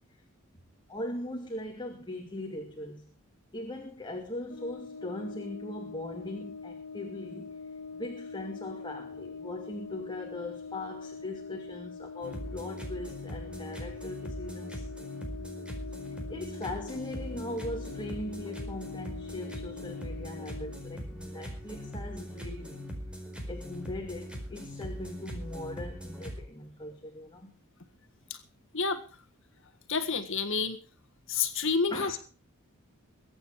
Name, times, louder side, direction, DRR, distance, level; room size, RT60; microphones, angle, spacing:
voice 1, 0.9-3.1 3.5-7.5 7.9-14.8 16.3-22.8 23.5-27.5 31.9-32.1, left 1 dB, 20° left, 3 dB, 2.4 m, -40 dB
Brass instrument, 4.5-20.9, left 5 dB, 85° left, 1.8 m, -43 dB
sound 1, 12.2-26.4, equal, 5° right, 4.6 m, -41 dB
voice 2, 29.9-30.8 31.3-32.2, left 5 dB, 65° left, 9 dB, 1.7 m, -29 dB
22.5 x 9.2 x 4.8 m, 0.37 s
head